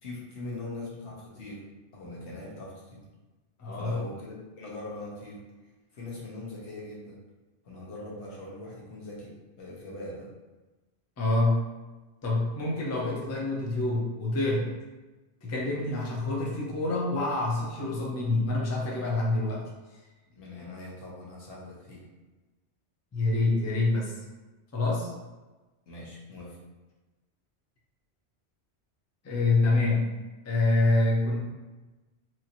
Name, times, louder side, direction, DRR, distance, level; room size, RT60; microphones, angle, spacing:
voice 1, 0.0-1.7 1.9-3.0 3.8-5.5 5.9-7.2 7.6-10.3 20.3-22.0 25.9-26.6, left 2 dB, 80° left, -4 dB, 1.1 m, -41 dB
voice 2, 3.6-4.0 11.2-11.6 12.2-14.7 15.4-19.6 23.1-24.1 24.7-25.1 29.2-30.1 30.4-31.4, left 2 dB, 20° left, -4 dB, 0.4 m, -26 dB
3.0 x 2.5 x 2.7 m, 1.2 s
omnidirectional pair, 1.1 m